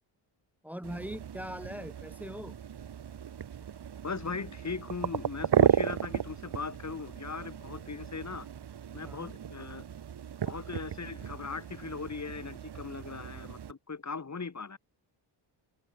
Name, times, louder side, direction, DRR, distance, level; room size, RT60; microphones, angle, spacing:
voice 1, 0.6-2.6 9.0-9.3, equal, 5° right, 5.4 m, -41 dB
sound 1, 0.8-13.7, right 9 dB, 55° right, 2.2 m, -34 dB
voice 2, 4.0-8.5 8.9-9.8 10.4-14.8, left 4 dB, 35° left, 5.1 m, -39 dB
open air
cardioid pair, 80°, 49 cm